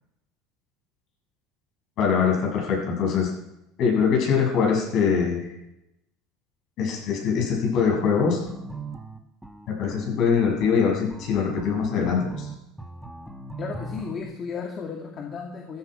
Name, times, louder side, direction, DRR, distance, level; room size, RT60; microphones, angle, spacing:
voice 1, 2.0-3.3 3.8-5.5 6.8-8.4 9.7-12.5, left 6 dB, 50° left, 0 dB, 7.2 m, -23 dB
sound 1, 8.5-14.2, right 2 dB, ahead, 1.4 m, -39 dB
voice 2, 13.6-15.8, left 5 dB, 35° left, 1 dB, 2.1 m, -34 dB
15.0 x 15.0 x 5.1 m, 0.85 s
cardioid pair, 135°, 0 cm